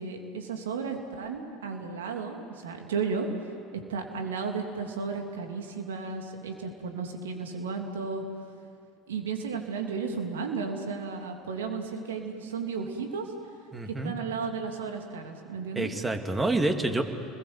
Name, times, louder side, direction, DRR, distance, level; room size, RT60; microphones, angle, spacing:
voice 1, 0.0-3.3 3.7-8.2 9.1-13.3 13.9-15.9, right 5 dB, 80° right, 3 dB, 3.1 m, -34 dB
voice 2, 13.7-14.1 15.8-17.0, right 2 dB, 15° right, 5 dB, 2.7 m, -27 dB
29.5 x 21.0 x 8.1 m, 2.4 s
hypercardioid pair, 75°, 0 cm